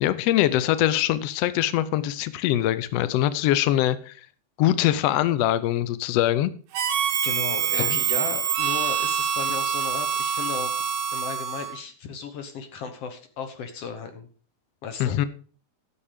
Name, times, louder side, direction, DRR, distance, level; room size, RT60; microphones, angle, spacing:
voice 1, 0.0-4.2 4.6-6.5 7.7-7.9 15.0-15.3, left 13 dB, 80° left, 14 dB, 1.4 m, -23 dB
Harmonica, 6.7-11.8, right 8 dB, 70° right, 2.0 m, -25 dB
voice 2, 7.2-10.8 11.1-14.3 14.8-15.2, left 6 dB, 60° left, 8 dB, 1.9 m, -35 dB
12.5 x 7.2 x 5.0 m, 0.40 s
omnidirectional pair, 3.6 m